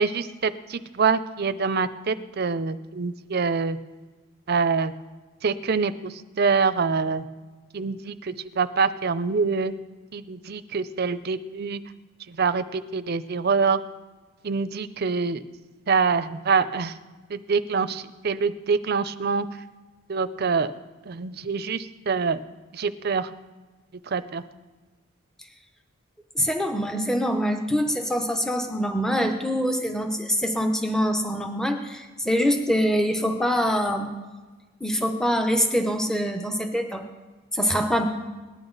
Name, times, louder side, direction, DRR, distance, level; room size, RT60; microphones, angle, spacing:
voice 1, 0.0-3.8 4.5-4.9 5.4-5.9 6.4-7.2 7.7-9.7 10.1-11.8 12.4-13.8 14.4-15.4 15.9-16.9 17.3-19.5 20.1-20.7 21.1-21.8 22.1-22.4 22.8-23.3 24.1-24.4, right 5 dB, 50° right, 12 dB, 0.5 m, -25 dB
voice 2, 26.3-34.1 34.8-37.0 37.5-38.1, equal, 5° left, 5 dB, 0.7 m, -24 dB
18.5 x 11.0 x 3.9 m, 1.3 s
head